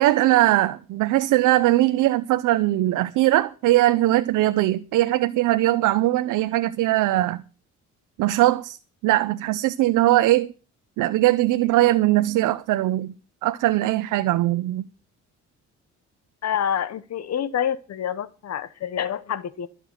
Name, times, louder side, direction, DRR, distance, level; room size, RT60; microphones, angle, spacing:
voice 1, 0.0-7.4 8.2-8.8 9.0-10.5 11.0-13.1 13.4-14.8, right 16 dB, 85° right, 0.7 m, -20 dB
voice 2, 16.4-19.7, left 9 dB, 60° left, 1.1 m, -27 dB
13.5 x 6.8 x 7.6 m
cardioid pair, 90°, 30 cm